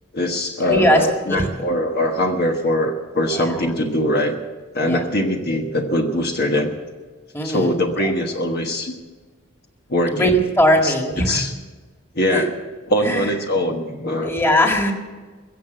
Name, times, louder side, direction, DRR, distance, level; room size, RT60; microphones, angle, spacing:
voice 1, 0.1-4.4 4.7-6.7 7.4-9.0 9.9-10.4 10.8-11.5 12.1-12.5 12.9-14.3, left 1 dB, 50° left, 3 dB, 1.3 m, -22 dB
voice 2, 0.7-1.5 3.3-3.6 4.8-5.0 7.3-8.1 10.1-11.4 12.3-12.4 13.0-13.3 14.2-14.9, equal, 10° left, 2 dB, 1.9 m, -20 dB
22.5 x 7.6 x 7.8 m, 1.4 s
head